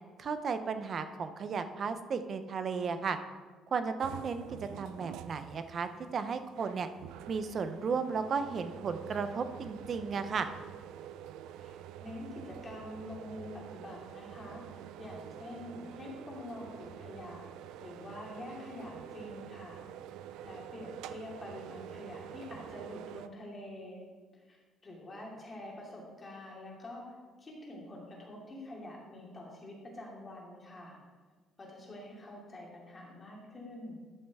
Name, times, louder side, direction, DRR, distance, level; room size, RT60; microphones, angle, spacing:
voice 1, 0.2-3.2 3.7-6.9 7.3-10.5, right 5 dB, 40° right, 9 dB, 0.6 m, -34 dB
sound 1, 4.0-23.3, right 10 dB, 90° right, 0.4 m, -47 dB
voice 2, 12.0-17.4 17.8-19.8 20.4-24.0 24.5-31.0 31.6-34.0, left 1 dB, 25° left, -3 dB, 2.5 m, -46 dB
12.5 x 6.4 x 3.5 m, 1.4 s
cardioid pair, 130°, 0 cm